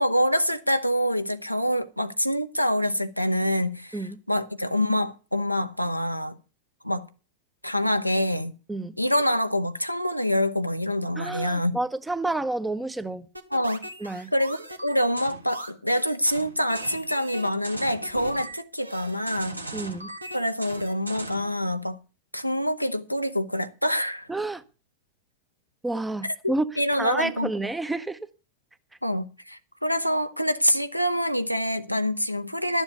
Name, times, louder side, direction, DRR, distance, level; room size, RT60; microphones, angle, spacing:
voice 1, 0.0-6.3 6.8-7.1 7.6-8.5 9.0-11.8 13.5-13.8 14.3-19.6 20.3-22.0 22.3-24.3 26.4-27.5 29.0-32.8, equal, 90° left, 0.7 m, -26 dB
voice 2, 11.2-13.3 14.0-14.3 19.7-20.1 24.3-24.6 25.8-26.6 27.0-28.2, right 2 dB, 5° right, 0.8 m, -29 dB
sound 1, 13.3-21.5, right 1 dB, 85° right, 1.3 m, -38 dB
12.5 x 7.4 x 6.8 m
figure-of-eight pair, 90°, 0 cm